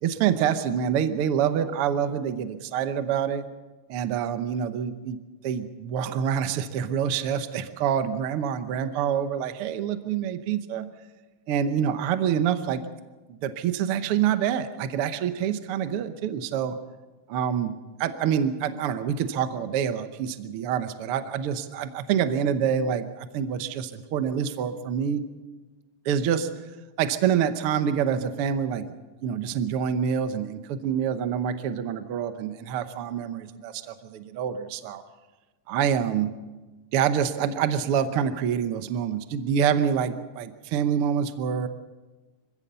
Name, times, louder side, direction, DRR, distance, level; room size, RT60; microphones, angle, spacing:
voice 1, 0.0-3.4 3.9-5.2 5.4-10.9 11.5-12.8 13.4-16.8 17.3-25.2 26.0-26.5 27.0-28.9 29.2-35.0 35.7-36.3 36.9-41.7, right 8 dB, 75° right, 10 dB, 1.3 m, -26 dB
25.0 x 16.0 x 6.8 m, 1.2 s
omnidirectional pair, 3.8 m